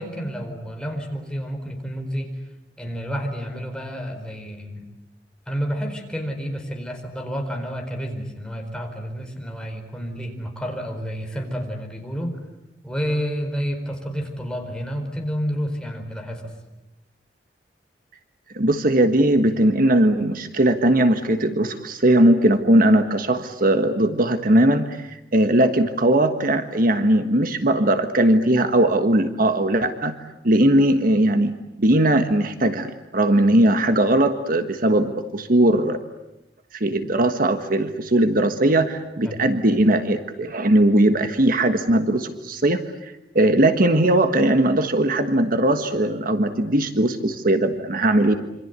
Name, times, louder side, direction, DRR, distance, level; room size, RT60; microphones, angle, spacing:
voice 1, 0.0-2.3 2.8-4.8 5.5-12.4 12.8-16.5 39.2-39.4, equal, 5° left, 2 dB, 4.8 m, -30 dB
voice 2, 18.5-30.2 30.4-36.0 36.7-48.3, right 1 dB, 55° right, 8 dB, 1.5 m, -19 dB
27.0 x 25.5 x 8.3 m, 0.93 s
head